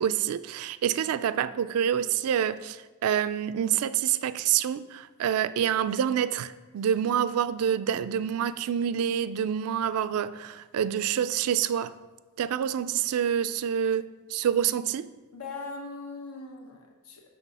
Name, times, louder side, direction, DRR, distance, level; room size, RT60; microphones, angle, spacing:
voice 1, 0.0-12.0 12.4-15.1, right 9 dB, 75° right, 0.3 m, -27 dB
voice 2, 15.3-17.4, left 3 dB, 85° left, 1.0 m, -40 dB
6.1 x 4.1 x 5.4 m
head